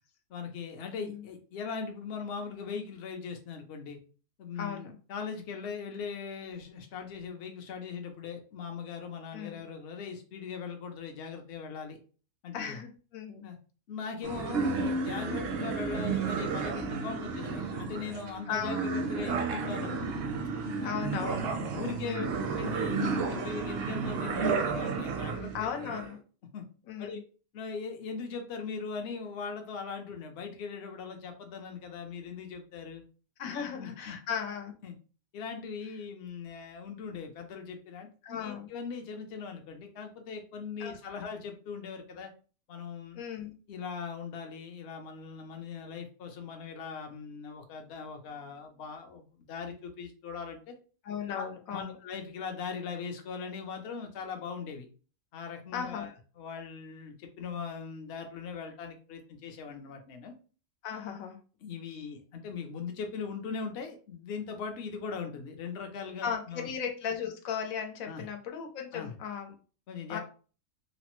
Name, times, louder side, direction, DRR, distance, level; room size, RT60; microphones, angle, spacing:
voice 1, 0.3-4.0 4.4-12.0 12.4-12.8 13.4-13.6 13.9-20.0 20.8-21.0 21.5-22.3 22.6-25.7 26.5-26.6 27.0-27.2 27.5-33.0 33.4-34.2 34.8-34.9 35.3-42.3 42.7-43.2 43.7-50.7 51.3-51.5 51.7-54.9 55.3-60.3 61.6-66.7 68.0-68.2 68.9-69.1 69.9-70.2, left 5 dB, 60° left, 4 dB, 0.8 m, -40 dB
voice 2, 4.6-4.9 9.3-9.6 12.5-13.5 18.5-18.8 20.8-21.5 22.0-22.3 25.5-26.2 26.9-27.2 33.4-34.7 38.2-38.7 40.8-41.2 43.1-43.5 51.0-52.0 55.7-56.1 60.8-61.4 66.2-69.5 70.1-70.2, left 7 dB, 80° left, 4 dB, 1.1 m, -36 dB
sound 1, 14.2-26.1, right 4 dB, 60° right, 0.6 m, -32 dB
3.1 x 2.0 x 2.9 m, 0.37 s
omnidirectional pair, 1.4 m